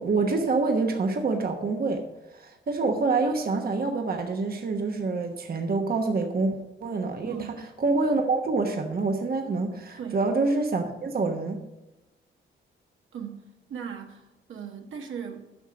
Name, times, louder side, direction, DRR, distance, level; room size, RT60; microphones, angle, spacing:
voice 1, 0.0-2.0 2.3-6.5 6.8-7.4 7.8-11.6, right 3 dB, 45° right, 1.2 m, -26 dB
voice 2, 7.2-7.6 10.0-10.2 13.1-15.5, right 7 dB, 70° right, 1.3 m, -38 dB
9.8 x 6.2 x 5.2 m
cardioid pair, 85°, 21 cm